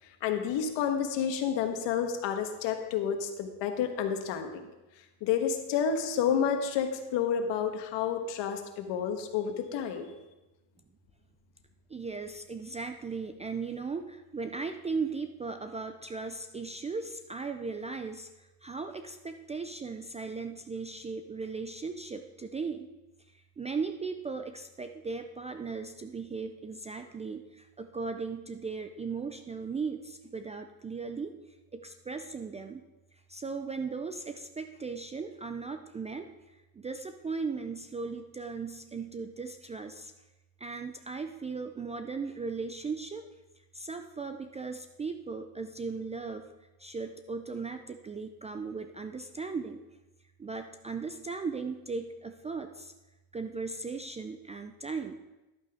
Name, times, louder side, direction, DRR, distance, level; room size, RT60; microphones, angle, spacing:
voice 1, 0.2-4.7 5.2-10.1, left 7 dB, 65° left, 6 dB, 1.4 m, -30 dB
voice 2, 11.9-22.9 23.3-31.3 31.7-32.8 33.3-40.1 40.6-43.3 43.6-46.5 46.8-49.8 50.4-52.9 53.3-55.2, right 4 dB, 15° right, 7 dB, 0.3 m, -37 dB
11.5 x 8.3 x 3.5 m, 1.0 s
supercardioid pair, 105°, 46 cm